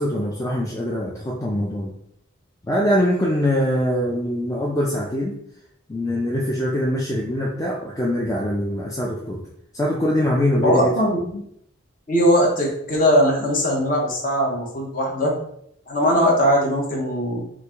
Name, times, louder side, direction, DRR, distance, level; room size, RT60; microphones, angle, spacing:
voice 1, 0.0-1.9 2.6-5.3 5.9-9.4 9.7-10.9, equal, 15° left, -3 dB, 0.3 m, -23 dB
voice 2, 10.6-11.4 12.1-15.3 15.9-17.4, equal, 40° left, 0 dB, 0.8 m, -20 dB
3.1 x 2.5 x 3.4 m, 0.73 s
head